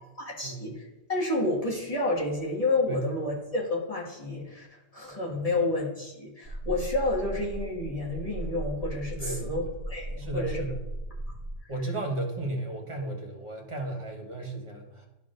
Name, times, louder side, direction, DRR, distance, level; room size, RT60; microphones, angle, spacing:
voice 1, 0.2-10.7, left 2 dB, 30° left, -5 dB, 1.8 m, -30 dB
sound 1, 6.4-11.6, right 1 dB, 85° left, 2.2 m, -37 dB
voice 2, 10.2-10.8 11.7-15.1, right 2 dB, 25° right, 0 dB, 1.1 m, -34 dB
12.0 x 4.7 x 2.5 m, 1.0 s
omnidirectional pair, 1.3 m